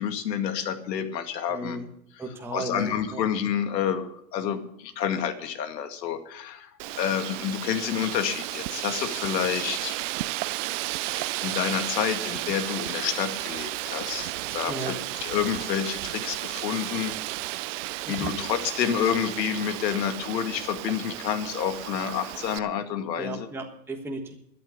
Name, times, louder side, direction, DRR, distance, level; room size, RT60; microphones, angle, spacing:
voice 1, 0.0-1.8 2.1-10.0 11.0-17.1 18.1-23.5, left 9 dB, 80° left, 9 dB, 2.2 m, -29 dB
voice 2, 1.5-1.9 2.2-3.2 14.7-14.9 18.0-18.3 23.2-24.3, right 2 dB, 5° right, 1 dB, 1.4 m, -34 dB
Wind, 6.8-22.6, right 18 dB, 50° right, 0.5 m, -33 dB
13.0 x 8.9 x 8.3 m, 0.75 s
supercardioid pair, 145°, 49 cm